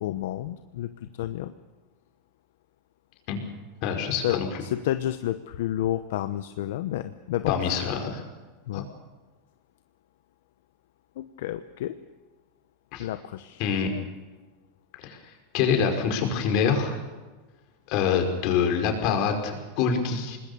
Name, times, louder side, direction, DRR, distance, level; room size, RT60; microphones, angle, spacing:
voice 1, 0.0-1.5 4.2-7.9 8.7-8.9 11.2-12.0 13.0-14.1, left 12 dB, 75° left, 10 dB, 0.9 m, -31 dB
voice 2, 3.8-4.5 7.5-8.2 8.7-8.8 12.9-13.1 13.6-13.9 15.0-15.2 15.5-17.0 17.9-20.4, left 6 dB, 55° left, 4 dB, 5.2 m, -25 dB
25.0 x 20.5 x 6.8 m, 1.3 s
supercardioid pair, 130°, 0 cm